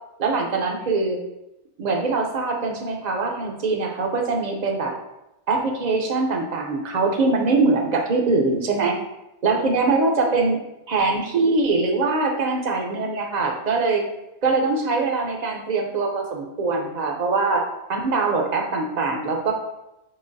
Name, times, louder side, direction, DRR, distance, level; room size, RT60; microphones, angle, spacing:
voice 1, 0.2-1.2 1.8-4.9 5.5-9.0 9.4-10.6 10.9-14.0 14.4-17.6 17.9-19.5, right 3 dB, 45° right, 2 dB, 0.6 m, -22 dB
5.6 x 2.9 x 2.6 m, 0.90 s
omnidirectional pair, 1.1 m